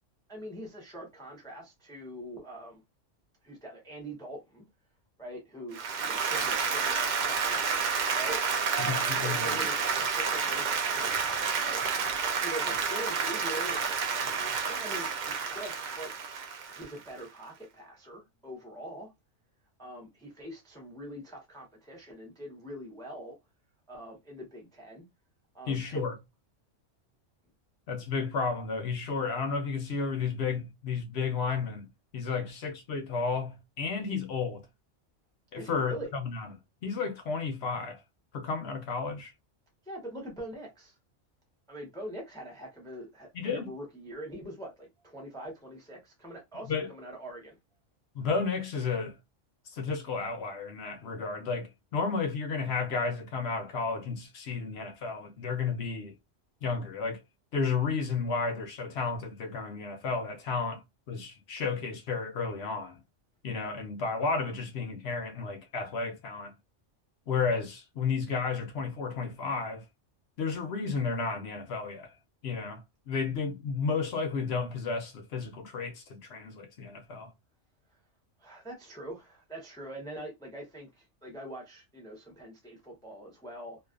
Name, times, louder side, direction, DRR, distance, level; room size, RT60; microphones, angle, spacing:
voice 1, 0.3-2.8 3.4-4.6 5.2-7.6 8.1-11.9 12.2-13.8 14.6-16.1 16.7-19.1 19.8-23.4 23.9-25.1 25.5-26.0 35.5-36.1 39.8-41.0 41.7-47.6 77.9-78.0 78.4-83.8, right 1 dB, 5° left, 0.5 m, -43 dB
Applause, 5.7-17.1, right 5 dB, 65° right, 0.4 m, -30 dB
voice 2, 8.8-9.6 25.7-26.1 27.9-31.9 32.1-34.6 35.5-36.0 36.2-36.5 36.8-38.0 38.3-39.3 43.3-43.7 46.7-46.9 48.1-49.2 49.7-56.1 56.6-57.2 57.5-60.8 61.1-63.0 63.4-66.5 67.3-69.8 70.4-72.1 72.4-72.8 73.1-77.3, left 5 dB, 65° left, 0.8 m, -32 dB
2.5 x 2.3 x 2.3 m
omnidirectional pair, 1.3 m